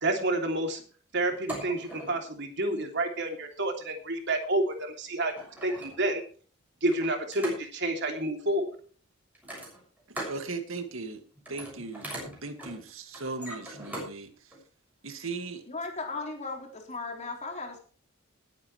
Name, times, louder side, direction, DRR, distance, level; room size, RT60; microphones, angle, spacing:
voice 1, 0.0-0.8 1.1-5.3 5.6-6.2 6.8-8.7, right 2 dB, 60° right, 3.0 m, -29 dB
sound 1, 1.3-2.3 3.4-3.6 4.8-4.9 5.3-6.2 6.9-7.9 9.3-10.4 10.8-11.1 11.4-14.1 14.5-14.6, right 1 dB, 10° right, 6.7 m, -41 dB
voice 2, 10.1-11.2 11.5-12.1 12.4-14.5 15.0-15.6, right 3 dB, 85° right, 2.1 m, -38 dB
voice 3, 15.7-17.8, left 3 dB, 35° left, 3.8 m, -36 dB
20.0 x 8.8 x 3.3 m
head